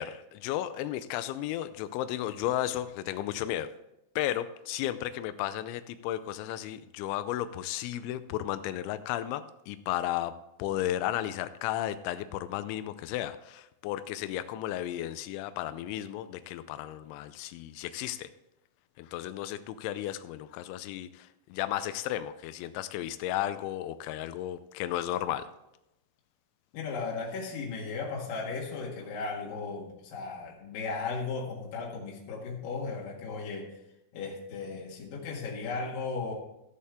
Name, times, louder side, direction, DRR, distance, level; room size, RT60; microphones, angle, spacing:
voice 1, 0.0-3.7 4.2-10.3 10.6-18.3 19.0-25.5, left 12 dB, 90° left, 12 dB, 2.7 m, -34 dB
voice 2, 26.7-33.7 34.1-36.3, left 4 dB, 55° left, -3 dB, 2.7 m, -36 dB
14.5 x 8.4 x 3.6 m, 0.90 s
omnidirectional pair, 5.9 m